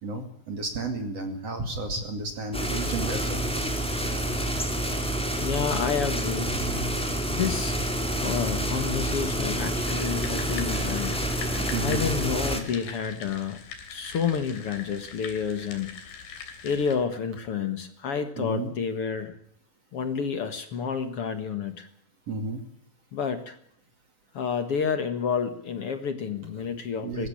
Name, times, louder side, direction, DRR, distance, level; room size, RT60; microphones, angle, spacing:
voice 1, 0.0-3.4 6.6-7.0 11.7-12.1 18.4-18.7 22.3-22.6 27.0-27.3, right 2 dB, 45° right, 5 dB, 3.3 m, -32 dB
sound 1, 2.5-12.6, right 1 dB, ahead, 2.5 m, -28 dB
voice 2, 5.4-6.5 7.3-7.8 8.2-11.2 11.8-13.6 13.9-16.0 16.3-16.4 16.6-19.3 19.9-21.9 23.1-23.6 24.3-27.3, left 6 dB, 50° left, 10 dB, 2.0 m, -29 dB
sound 2, 9.9-17.0, left 6 dB, 80° left, 5.0 m, -42 dB
20.5 x 16.5 x 8.7 m, 0.68 s
omnidirectional pair, 4.2 m